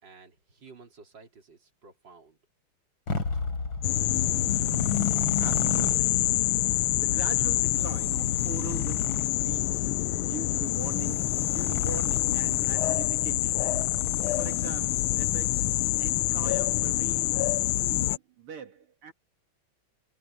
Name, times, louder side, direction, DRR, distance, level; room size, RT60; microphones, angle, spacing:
voice 1, 0.0-2.4, right 4 dB, 55° right, 4.2 m, -52 dB
Motorcycle, 3.1-15.2, left 3 dB, 65° left, 4.4 m, -36 dB
sound 1, 3.8-18.2, left 16 dB, 80° left, 1.4 m, -26 dB
voice 2, 5.4-6.4 6.9-13.7 14.4-19.1, right 7 dB, 85° right, 3.0 m, -42 dB
omnidirectional pair, 2.4 m